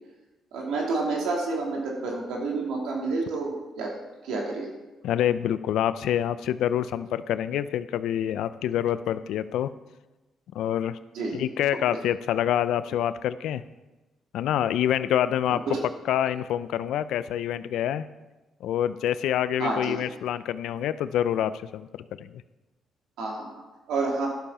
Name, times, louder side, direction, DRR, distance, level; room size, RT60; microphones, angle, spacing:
voice 1, 0.5-4.0 4.2-4.7 11.1-11.4 11.9-12.0 15.5-15.8 19.6-20.0 23.2-23.5 23.9-24.3, right 3 dB, 85° right, -2 dB, 2.9 m, -29 dB
voice 2, 5.0-9.7 10.5-11.0 11.3-13.6 14.3-15.6 16.1-18.1 18.6-22.4, left 10 dB, 80° left, 14 dB, 0.5 m, -26 dB
11.5 x 6.9 x 5.5 m, 1.1 s
cardioid pair, 90°, 0 cm